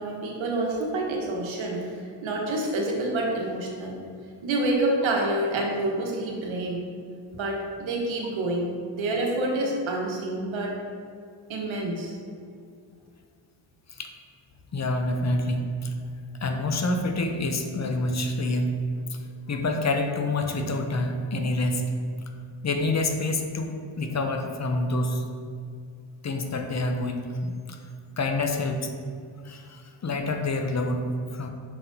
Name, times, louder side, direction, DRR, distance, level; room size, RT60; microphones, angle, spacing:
voice 1, 0.0-1.9 2.2-4.0 4.4-6.8 7.3-10.8 11.5-12.2, right 2 dB, 75° right, 0 dB, 1.3 m, -28 dB
voice 2, 14.7-15.9 16.4-18.8 19.1-19.2 19.5-21.9 22.6-25.3 26.2-27.8 28.2-28.9 29.4-31.1 31.3-31.5, left 2 dB, 35° left, 4 dB, 0.6 m, -27 dB
6.1 x 5.8 x 2.7 m, 2.3 s
cardioid pair, 80°, 47 cm